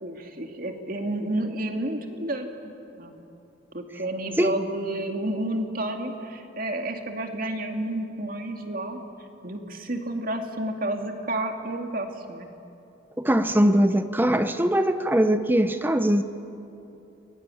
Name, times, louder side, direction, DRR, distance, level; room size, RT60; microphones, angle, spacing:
voice 1, 0.0-3.2 3.7-9.0 9.4-12.5, right 1 dB, 45° right, 2.5 m, -31 dB
voice 2, 13.2-16.2, equal, 10° right, 0.8 m, -21 dB
30.0 x 22.5 x 8.6 m
head